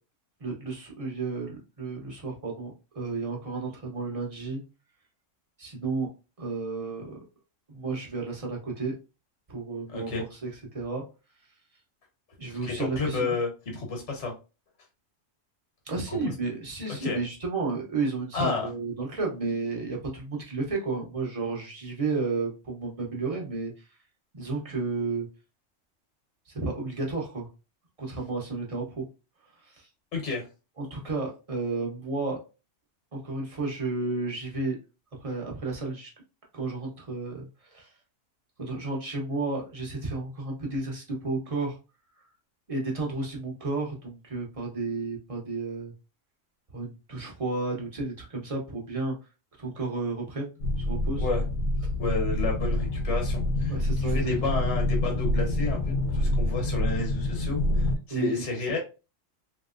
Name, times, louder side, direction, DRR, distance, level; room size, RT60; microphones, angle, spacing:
voice 1, 0.4-4.6 5.6-6.1 6.4-7.2 7.7-8.9 9.5-11.0 12.4-13.4 15.9-23.9 24.3-25.3 26.5-27.5 28.0-29.0 29.6-29.9 30.8-32.4 33.1-34.8 35.2-36.1 36.5-37.9 38.6-41.8 42.7-45.9 46.7-49.1 49.6-51.3 53.7-54.3 58.1-58.4 58.7-58.8, right 3 dB, 30° right, -1 dB, 1.0 m, -32 dB
voice 2, 9.9-10.2 12.5-14.3 16.2-16.3 17.0-17.2 18.3-18.7 30.1-30.4 51.2-51.4 52.0-58.8, left 3 dB, 60° left, 1 dB, 1.5 m, -31 dB
sound 1, 50.6-58.0, left 1 dB, 80° left, 1.2 m, -27 dB
3.3 x 2.9 x 2.4 m, 0.30 s
omnidirectional pair, 1.3 m